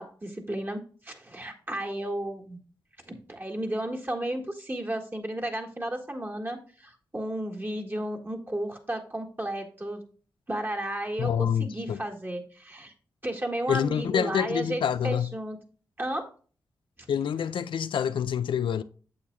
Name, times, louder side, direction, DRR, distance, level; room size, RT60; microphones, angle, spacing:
voice 1, 0.0-2.6 3.1-10.0 10.5-12.9 13.2-15.6 16.0-16.3, right 1 dB, 25° right, 1.8 m, -33 dB
voice 2, 11.2-12.0 13.7-15.3 17.1-18.8, left 8 dB, 75° left, 0.4 m, -27 dB
8.6 x 6.9 x 2.3 m
supercardioid pair, 40°, 9 cm